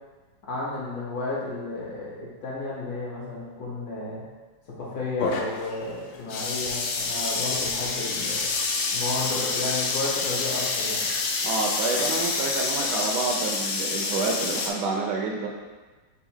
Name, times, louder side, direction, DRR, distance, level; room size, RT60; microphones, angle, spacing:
voice 1, 0.4-4.2 4.7-8.4 8.9-11.1, left 2 dB, 60° left, -5 dB, 1.2 m, -32 dB
sound 1, 5.2-14.7, left 4 dB, 80° left, 1.3 m, -28 dB
voice 2, 11.4-15.5, right 4 dB, 75° right, 0 dB, 1.1 m, -28 dB
3.8 x 2.4 x 4.3 m, 1.3 s
omnidirectional pair, 2.0 m